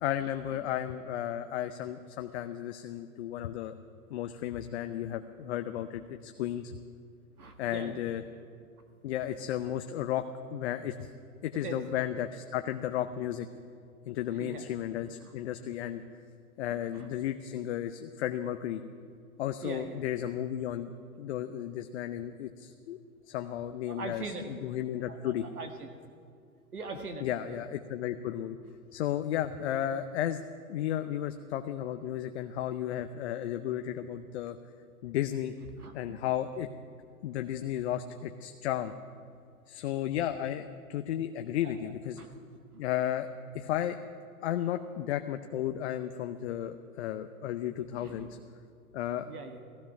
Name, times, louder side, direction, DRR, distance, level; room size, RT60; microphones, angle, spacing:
voice 1, 0.0-3.7 4.1-6.7 7.6-8.2 9.0-11.1 11.4-13.5 14.1-16.0 16.6-18.8 19.4-20.9 21.2-23.0 23.3-25.4 27.2-28.6 28.9-30.4 30.7-34.6 35.0-35.5 35.9-36.7 37.2-38.9 39.7-42.2 42.8-43.3 43.5-44.0 44.4-48.4 48.9-49.3, left 11 dB, 50° left, 8 dB, 0.7 m, -33 dB
voice 2, 7.4-8.2 9.2-9.4 11.5-11.8 14.3-14.7 15.2-15.3 16.7-17.1 19.6-20.1 23.9-24.5 25.1-25.9 26.7-27.6 29.7-29.9 35.8-35.9 37.7-37.8 41.0-41.1 41.6-41.9 42.2-42.3 42.7-42.8 47.9-48.3 49.3-49.6, right 3 dB, 85° right, 5 dB, 2.0 m, -42 dB
15.0 x 15.0 x 5.9 m, 2.3 s
hypercardioid pair, 125°, 44 cm